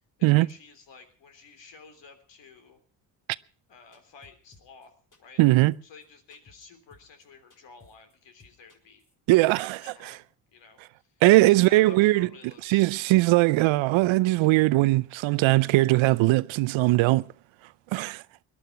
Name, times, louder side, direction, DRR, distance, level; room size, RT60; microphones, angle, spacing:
voice 1, 0.2-2.8 3.7-4.9 5.2-5.4 5.8-9.0 9.5-10.2 10.5-12.8, left 5 dB, 65° left, 3.5 m, -52 dB
sound 1, 3.9-4.9 5.1-5.5 5.7-5.8 6.0-6.1 6.3-6.6 6.9-7.2 7.5-8.1 8.4-9.1, left 3 dB, 40° left, 4.0 m, -57 dB
voice 2, 5.4-5.7 9.3-9.8 11.2-12.3 12.7-17.3 17.9-18.2, right 19 dB, 75° right, 0.6 m, -20 dB
18.5 x 11.5 x 5.9 m
cardioid pair, 85°, 47 cm